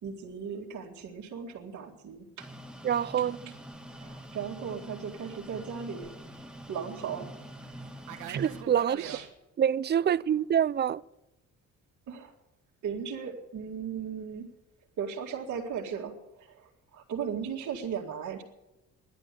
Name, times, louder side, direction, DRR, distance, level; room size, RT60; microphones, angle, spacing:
voice 1, 0.0-2.5 3.9-6.1 6.7-7.3 9.0-9.3 12.1-12.3 12.8-14.5 15.0-18.4, right 7 dB, 70° right, 2.2 m, -37 dB
sound 1, 2.4-8.6, equal, 5° right, 1.4 m, -46 dB
Fixed-wing aircraft airplane, 2.7-9.3, right 10 dB, 90° right, 1.4 m, -47 dB
voice 2, 2.8-3.5 8.3-9.0 9.6-11.0, right 9 dB, 35° right, 0.4 m, -26 dB
13.0 x 11.0 x 8.4 m
cardioid pair, 90°, 30 cm